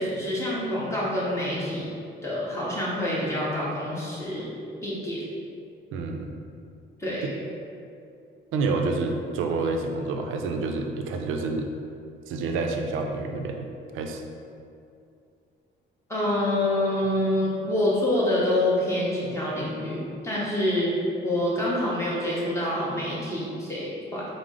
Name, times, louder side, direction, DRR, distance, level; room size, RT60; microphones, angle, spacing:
voice 1, 0.0-1.8 2.2-4.5 4.8-5.2 7.0-7.4 16.1-20.9 21.2-24.3, left 1 dB, 15° left, -7 dB, 1.0 m, -26 dB
voice 2, 5.9-6.3 7.2-7.3 8.5-11.7 12.3-13.7 13.9-14.2, right 3 dB, 85° right, 3 dB, 0.4 m, -28 dB
4.6 x 2.0 x 3.7 m, 2.5 s
cardioid pair, 90°, 20 cm